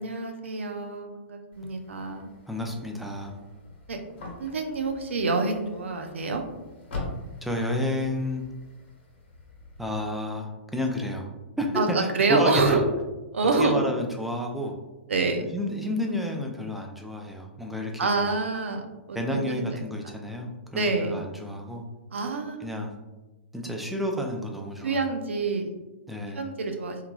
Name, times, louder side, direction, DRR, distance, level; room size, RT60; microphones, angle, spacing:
voice 1, 0.0-2.3 3.9-4.0 4.4-6.4 11.8-12.8 13.3-13.9 15.1-15.4 18.0-18.8 19.1-19.8 20.0-20.1 20.7-21.1 22.1-22.7 24.8-25.7 26.4-27.0, right 4 dB, 90° right, 5 dB, 0.4 m, -27 dB
sound 1, 1.5-10.0, left 2 dB, 70° left, 0.9 m, -43 dB
voice 2, 2.5-3.4 7.4-8.4 9.8-11.3 11.6-12.8 13.6-14.7 15.5-18.3 19.1-21.8 22.6-23.0 23.5-25.1 26.1-26.5, left 1 dB, ahead, 1 dB, 0.3 m, -30 dB
3.0 x 2.3 x 2.2 m, 1.1 s
hypercardioid pair, 130°, 6 cm